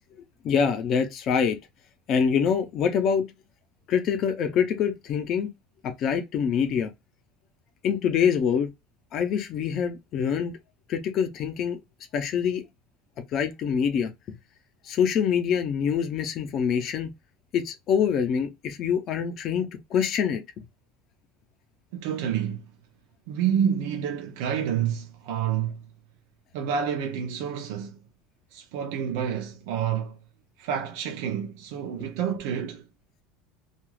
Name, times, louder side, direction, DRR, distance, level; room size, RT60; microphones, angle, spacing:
voice 1, 0.4-1.6 2.1-3.3 3.9-5.5 5.8-6.9 7.8-8.7 9.1-10.5 10.9-11.8 12.1-12.6 13.3-14.1 14.8-17.1 17.5-20.4, left 7 dB, 35° left, 0.6 m, -25 dB
voice 2, 21.9-22.6 23.3-25.8 26.5-28.0 28.5-30.1 30.6-32.8, right 8 dB, 65° right, 0.5 m, -28 dB
2.4 x 2.3 x 3.1 m
cardioid pair, 165°, 0 cm